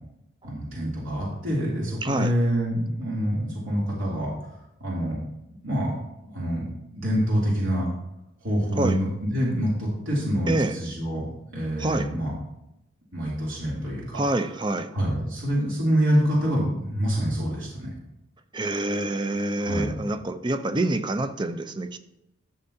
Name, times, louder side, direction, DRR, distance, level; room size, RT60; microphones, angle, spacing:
voice 1, 0.4-4.3 4.8-5.2 5.6-5.9 6.2-6.6 6.9-7.9 8.4-11.3 11.5-12.3 13.1-14.2 14.9-17.9 19.6-20.1, equal, 75° right, 2.8 m, -26 dB
voice 2, 2.0-2.3 8.8-9.0 10.5-10.7 11.8-12.1 14.2-14.9 18.5-22.0, right 2 dB, 25° right, 0.5 m, -26 dB
13.0 x 6.6 x 2.7 m
head